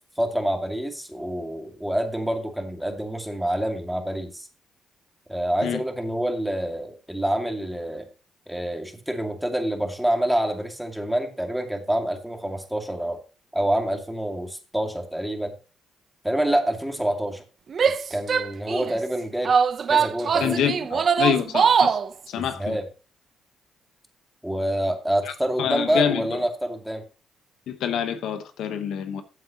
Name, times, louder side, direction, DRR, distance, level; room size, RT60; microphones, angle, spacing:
voice 1, 0.2-4.5 5.3-8.1 8.5-13.2 13.5-15.5 16.2-17.4 18.1-19.5 19.9-21.0 22.4-22.9 24.4-27.0, right 1 dB, 5° right, 2.2 m, -27 dB
Female speech woman speaking / Yell, 17.7-19.0 19.4-22.1, right 6 dB, 50° right, 0.8 m, -22 dB
voice 2, 20.4-20.7 21.2-22.0 22.3-22.8 25.6-26.2 27.7-29.2, left 8 dB, 80° left, 1.1 m, -26 dB
14.0 x 7.7 x 3.0 m
cardioid pair, 90°, 0 cm